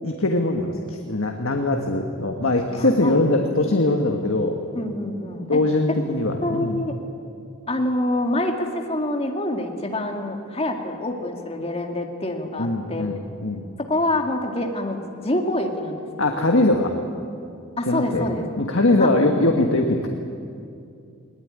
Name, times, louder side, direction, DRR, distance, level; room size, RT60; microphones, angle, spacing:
voice 1, 0.0-4.6 5.5-6.8 12.6-13.6 16.2-16.9 17.9-18.2 18.6-20.1, left 2 dB, 65° left, 3 dB, 1.5 m, -21 dB
voice 2, 2.7-3.2 4.7-5.6 6.4-7.0 7.7-13.1 13.8-16.6 17.8-18.5 19.0-19.1, left 1 dB, 25° left, 3 dB, 2.2 m, -26 dB
20.0 x 19.5 x 9.9 m, 2.5 s
head